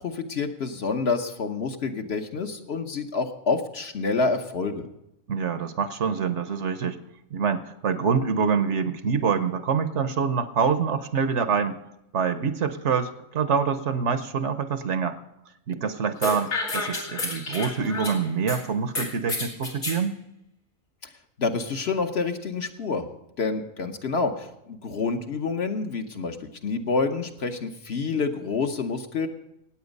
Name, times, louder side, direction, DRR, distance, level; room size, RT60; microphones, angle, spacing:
voice 1, 0.0-4.9 21.4-23.1 23.4-26.4 26.6-29.3, left 4 dB, 55° left, 5 dB, 1.2 m, -28 dB
voice 2, 5.3-7.0 7.3-11.8 12.1-15.2 15.7-20.2, right 6 dB, 60° right, 10 dB, 1.1 m, -26 dB
sound 1, 16.2-18.6 18.9-20.0, left 2 dB, 85° left, 3.0 m, -30 dB
17.0 x 9.0 x 5.3 m, 0.84 s
omnidirectional pair, 1.4 m